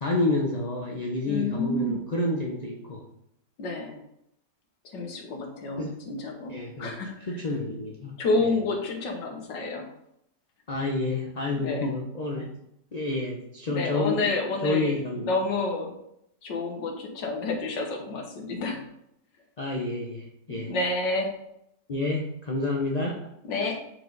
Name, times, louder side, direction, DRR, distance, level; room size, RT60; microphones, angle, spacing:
voice 1, 0.0-3.0 5.8-6.0 6.5-6.9 7.2-8.5 10.7-12.5 12.9-14.3 14.6-15.4 19.6-20.7 21.9-23.3, left 2 dB, 40° left, 0 dB, 0.6 m, -29 dB
voice 2, 1.3-2.0 3.6-4.0 4.8-7.4 8.2-9.9 11.6-11.9 13.7-15.9 16.4-18.8 20.6-21.3 23.4-23.8, left 3 dB, 85° left, 3 dB, 1.9 m, -29 dB
7.7 x 4.8 x 3.9 m, 0.76 s
omnidirectional pair, 1.9 m